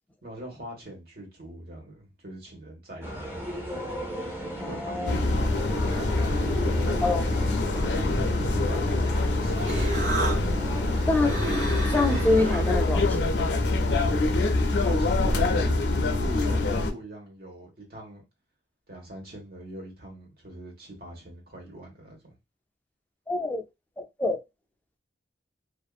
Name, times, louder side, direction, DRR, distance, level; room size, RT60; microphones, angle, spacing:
voice 1, 0.2-3.4 4.6-5.9 6.4-7.1 8.0-8.9 9.1-10.0 14.8-18.2 18.9-22.3, right 1 dB, 60° right, 1.3 m, -43 dB
sound 1, 3.0-12.8, equal, 15° right, 0.7 m, -36 dB
voice 2, 4.6-5.1 7.0-7.3 11.1-11.4 11.8-13.2 23.3-23.6 24.0-24.4, left 2 dB, 10° left, 0.3 m, -26 dB
sound 2, 5.1-16.9, left 2 dB, 65° left, 0.5 m, -25 dB
Human voice, 9.2-14.4, right 3 dB, 85° right, 1.0 m, -35 dB
2.7 x 2.4 x 2.3 m
head